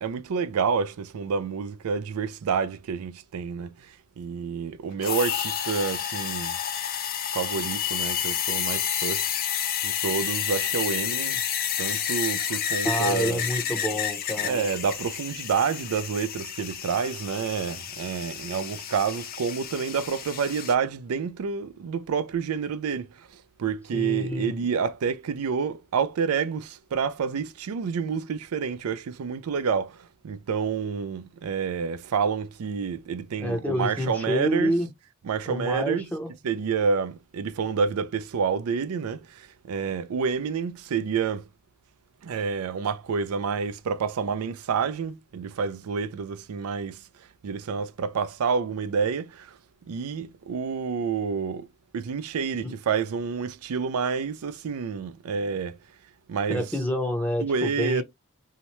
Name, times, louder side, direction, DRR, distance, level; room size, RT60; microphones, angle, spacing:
voice 1, 0.0-6.6 7.3-9.3 9.8-11.4 11.8-13.4 14.4-34.8 35.2-36.1 36.4-41.5 42.2-49.6 49.9-51.7 51.9-55.8 56.3-56.6 57.4-58.0, right 6 dB, 80° right, 0.4 m, -28 dB
sound 1, 5.0-20.7, left 9 dB, 40° left, 0.4 m, -30 dB
voice 2, 12.8-14.7 23.9-24.5 33.4-34.9 35.5-36.3 52.6-52.7 56.5-58.0, equal, 5° left, 0.7 m, -28 dB
2.8 x 2.1 x 3.0 m
head